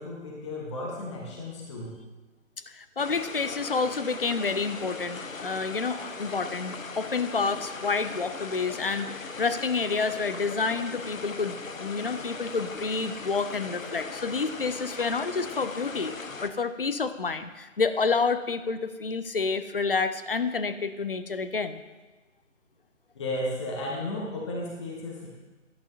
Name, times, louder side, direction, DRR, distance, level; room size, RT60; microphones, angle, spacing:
voice 1, 0.0-1.9 23.1-25.3, left 1 dB, 20° left, -3 dB, 0.9 m, -34 dB
voice 2, 2.7-16.2 16.4-21.8, left 4 dB, 45° left, 11 dB, 0.4 m, -29 dB
sound 1, 3.0-16.5, left 4 dB, 90° left, 0.7 m, -39 dB
11.0 x 8.1 x 2.6 m, 1.2 s
figure-of-eight pair, 145°, 39 cm